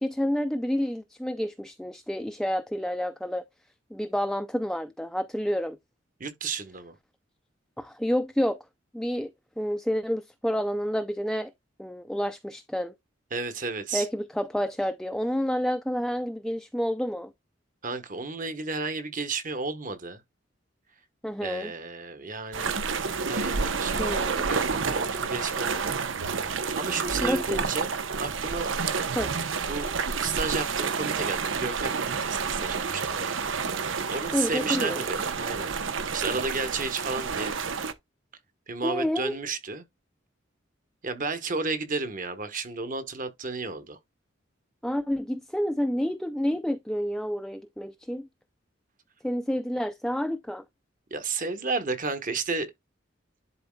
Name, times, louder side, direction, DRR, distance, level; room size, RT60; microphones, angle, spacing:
voice 1, 0.0-3.4 3.9-5.8 7.8-8.6 8.9-9.3 9.6-11.5 11.8-12.9 13.9-17.3 21.2-21.7 24.0-24.4 27.2-27.7 29.1-29.3 34.3-35.1 38.8-39.4 44.8-48.3 49.2-50.6, equal, 5° left, 0.4 m, -29 dB
voice 2, 6.2-6.9 13.3-14.1 17.8-20.2 21.4-22.7 23.0-26.0 26.7-27.9 28.2-28.7 29.7-33.3 34.1-37.5 38.7-39.8 41.0-44.0 51.1-52.7, right 4 dB, 45° right, 1.2 m, -32 dB
sound 1, 22.5-37.9, right 5 dB, 80° right, 0.9 m, -29 dB
11.0 x 4.1 x 2.3 m
head